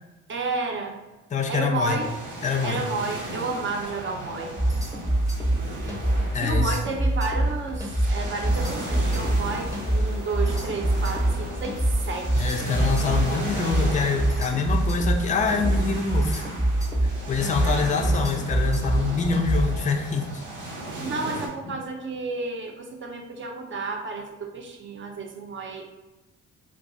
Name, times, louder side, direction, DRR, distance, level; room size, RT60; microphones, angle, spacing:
voice 1, 0.3-1.0 1.5-2.1 2.6-4.6 6.4-12.5 17.6-17.9 21.0-25.8, right 3 dB, 40° right, 3 dB, 0.6 m, -31 dB
voice 2, 1.3-2.0 2.4-2.8 6.3-6.8 12.4-16.5 17.0-20.4, left 5 dB, 25° left, 4 dB, 0.4 m, -26 dB
sound 1, 2.0-21.5, right 1 dB, 85° right, 0.8 m, -36 dB
sound 2, 4.6-19.8, right 1 dB, 10° right, 0.8 m, -24 dB
sound 3, 8.4-14.4, left 3 dB, 75° left, 0.6 m, -43 dB
2.3 x 2.3 x 3.9 m, 1.1 s
cardioid pair, 90°, 30 cm